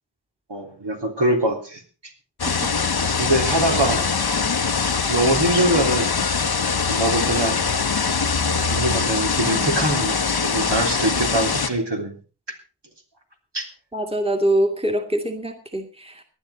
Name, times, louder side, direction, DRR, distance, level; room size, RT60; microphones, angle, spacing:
voice 1, 0.5-1.8 3.1-4.1 5.1-6.1 6.9-7.6 8.7-12.1 13.5-13.7, right 1 dB, 65° right, 2 dB, 3.4 m, -23 dB
sound 1, 2.4-11.7, left 5 dB, 55° left, 0.9 m, -22 dB
voice 2, 13.9-16.2, right 1 dB, 10° right, 4 dB, 2.1 m, -23 dB
18.5 x 11.0 x 4.2 m, 0.35 s
wide cardioid pair, 60°, 45 cm